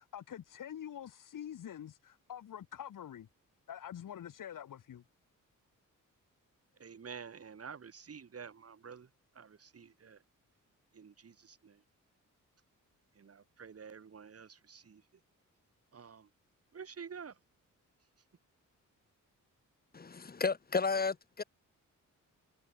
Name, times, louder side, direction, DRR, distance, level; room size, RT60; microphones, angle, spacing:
voice 1, 0.0-3.3 3.7-5.0, left 10 dB, 80° left, 7.8 m, -46 dB
voice 2, 6.7-10.2 10.9-11.8 13.1-15.1 15.9-16.3 16.7-17.4, right 6 dB, 50° right, 6.8 m, -50 dB
voice 3, 19.9-21.4, left 4 dB, 30° left, 1.6 m, -33 dB
cardioid pair, 115°, 32 cm